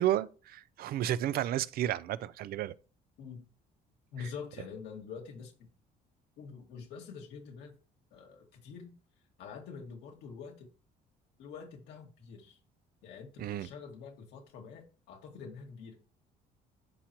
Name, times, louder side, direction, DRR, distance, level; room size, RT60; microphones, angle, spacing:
voice 1, 0.0-2.7 4.2-4.3 13.4-13.7, right 12 dB, 65° right, 0.4 m, -32 dB
voice 2, 4.1-5.7 6.4-7.8 8.1-8.9 9.4-10.7 11.4-12.6 13.0-16.0, left 6 dB, 80° left, 2.0 m, -46 dB
11.5 x 4.4 x 2.9 m
cardioid pair, 110°, 17 cm